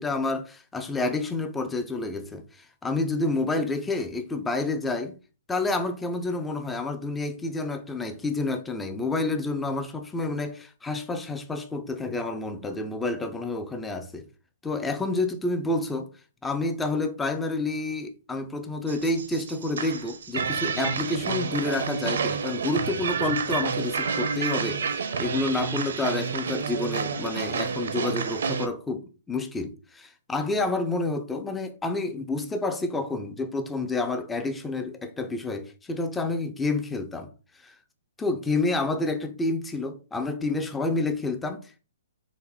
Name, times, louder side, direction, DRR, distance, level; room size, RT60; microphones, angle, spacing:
voice 1, 0.0-5.2 5.5-14.3 14.6-16.1 16.4-37.3 37.6-37.8 38.2-41.9, left 2 dB, 5° left, 0.4 m, -29 dB
sound 1, 18.9-28.7, right 6 dB, 70° right, 0.6 m, -29 dB
4.1 x 2.5 x 4.0 m
hypercardioid pair, 160°, 0 cm